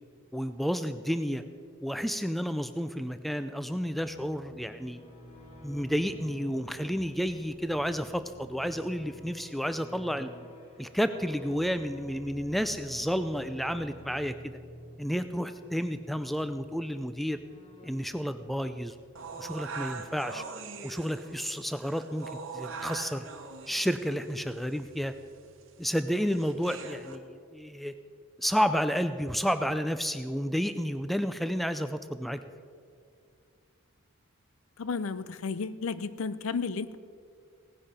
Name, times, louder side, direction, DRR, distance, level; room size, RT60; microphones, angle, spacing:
voice 1, 0.3-1.4 1.8-5.0 5.6-10.3 10.8-14.6 15.0-17.4 17.8-18.9 19.4-20.4 20.8-23.2 23.7-25.1 25.8-27.9 28.4-32.4, equal, ahead, 10 dB, 0.3 m, -31 dB
sound 1, 3.6-20.1, equal, 30° left, 1.9 m, -51 dB
sound 2, 19.2-27.2, right 4 dB, 65° right, 1.1 m, -42 dB
voice 2, 34.8-37.0, left 4 dB, 70° left, 15 dB, 0.5 m, -33 dB
17.5 x 9.8 x 5.1 m, 2.3 s
head